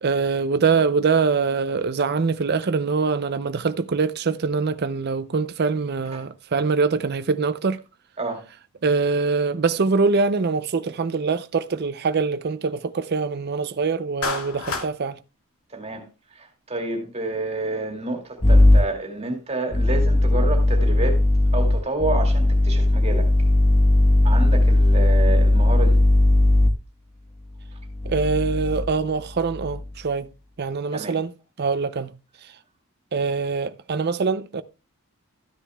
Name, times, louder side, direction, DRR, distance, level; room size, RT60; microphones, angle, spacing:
voice 1, 0.0-7.8 8.8-15.2 28.1-30.3 30.6-31.3 31.6-32.1 32.4-32.5 33.1-34.6, right 4 dB, 45° right, 0.5 m, -23 dB
Clapping, 14.2-14.9, left 4 dB, 70° left, 2.4 m, -28 dB
voice 2, 15.7-21.2 21.5-23.3 24.2-26.0 30.9-31.2, right 2 dB, 30° right, 2.3 m, -29 dB
sound 1, 18.4-18.8 19.7-26.7 27.7-28.9 29.4-29.8, left 1 dB, 30° left, 1.0 m, -17 dB
13.5 x 10.0 x 2.3 m
head